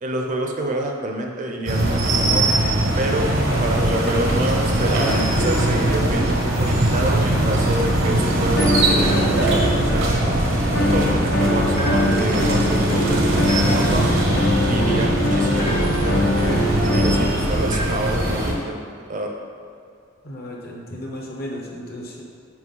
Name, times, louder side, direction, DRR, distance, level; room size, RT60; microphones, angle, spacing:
voice 1, 0.0-2.5 3.0-3.3 3.6-10.4 10.9-14.2 14.7-18.8 19.1-19.3, right 1 dB, 40° right, 2 dB, 0.6 m, -27 dB
sound 1, 1.7-18.5, right 1 dB, 80° right, 1.1 m, -21 dB
sound 2, 4.6-5.3 5.7-6.7 8.6-10.1 10.8-17.3, left 1 dB, 75° left, 0.7 m, -23 dB
sound 3, 5.1-5.5 6.9-7.2 9.0-9.4 11.7-12.3 13.5-14.1 15.6-16.1 17.7-18.2, equal, 25° left, 0.8 m, -34 dB
voice 2, 20.2-22.2, equal, 50° left, -2 dB, 1.0 m, -34 dB
6.0 x 5.0 x 3.8 m, 2.4 s
head